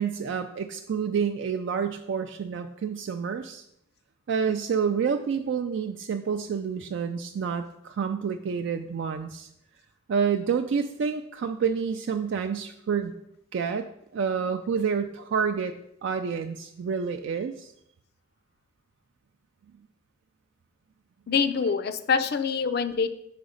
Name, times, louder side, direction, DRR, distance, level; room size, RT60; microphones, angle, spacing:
voice 1, 0.0-3.6 4.3-9.5 10.1-13.1 13.5-15.7 16.0-17.7, right 6 dB, 65° right, 6 dB, 0.3 m, -28 dB
voice 2, 21.3-23.1, left 5 dB, 50° left, 11 dB, 0.4 m, -25 dB
5.0 x 4.7 x 5.1 m, 0.77 s
head